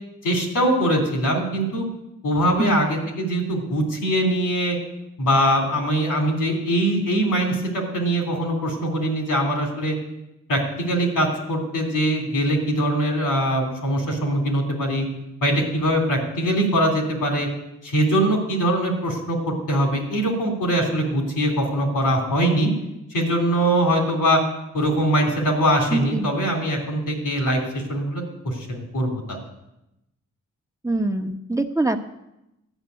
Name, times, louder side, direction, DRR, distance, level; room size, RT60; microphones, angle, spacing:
voice 1, 0.2-1.8 2.2-4.8 5.2-9.9 10.5-15.1 15.4-17.5 17.8-22.7 23.1-24.4 24.7-29.2, right 1 dB, 85° left, 1 dB, 3.3 m, -22 dB
voice 2, 25.9-26.3 30.8-32.0, right 2 dB, 10° right, 3 dB, 1.1 m, -24 dB
12.5 x 5.8 x 9.5 m, 0.89 s
supercardioid pair, 45°, 31 cm